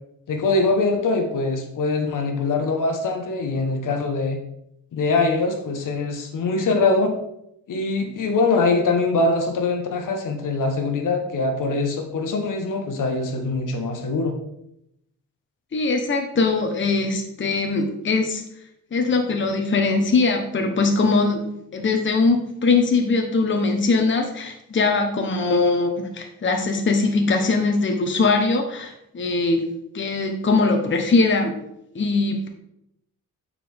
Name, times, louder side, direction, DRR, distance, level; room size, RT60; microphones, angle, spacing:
voice 1, 0.3-4.4 4.9-7.1 7.7-14.3, left 3 dB, 70° left, 4 dB, 1.2 m, -23 dB
voice 2, 15.7-18.4 18.9-21.4 21.7-29.6 29.9-31.5 31.9-32.5, left 3 dB, 35° left, 4 dB, 1.0 m, -21 dB
8.5 x 4.9 x 3.5 m, 0.80 s
cardioid pair, 95°, 33 cm